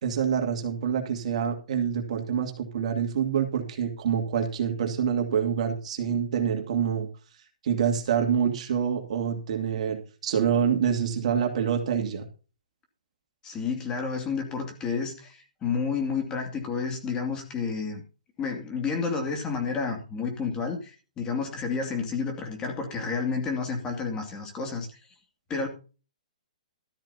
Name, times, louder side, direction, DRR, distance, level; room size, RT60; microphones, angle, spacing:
voice 1, 0.0-7.1 7.6-12.2, right 7 dB, 55° right, 4 dB, 2.6 m, -26 dB
voice 2, 13.4-18.0 18.4-24.9 25.5-25.7, left 5 dB, 20° left, 3 dB, 2.5 m, -30 dB
13.0 x 12.0 x 2.8 m, 0.33 s
hypercardioid pair, 150°, 4 cm